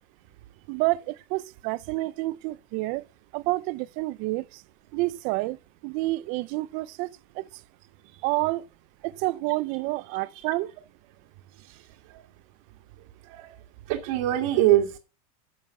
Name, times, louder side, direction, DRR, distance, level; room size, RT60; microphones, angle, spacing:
voice 1, 0.7-3.0 3.3-4.6 4.9-5.6 5.8-7.1 7.4-7.5 8.2-8.6 9.0-10.7, right 20 dB, 40° right, 0.5 m, -29 dB
voice 2, 13.9-15.0, right 13 dB, 60° right, 1.8 m, -23 dB
11.0 x 6.7 x 5.5 m
supercardioid pair, 160°, 19 cm